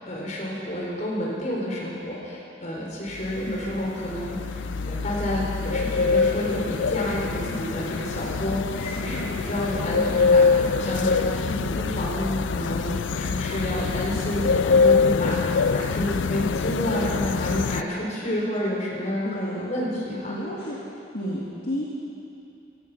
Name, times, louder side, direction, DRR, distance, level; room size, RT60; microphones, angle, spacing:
voice 1, 0.0-8.6 9.0-11.5 11.8-20.4 21.2-21.4, left 1 dB, 40° left, -4 dB, 4.1 m, -29 dB
sound 1, 3.1-17.8, left 4 dB, 90° left, 0.4 m, -24 dB
voice 2, 8.7-9.3 11.5-11.8 19.2-19.6 20.3-20.8 21.1-21.8, equal, 60° left, -7 dB, 2.1 m, -32 dB
16.5 x 13.0 x 6.0 m, 2.6 s
head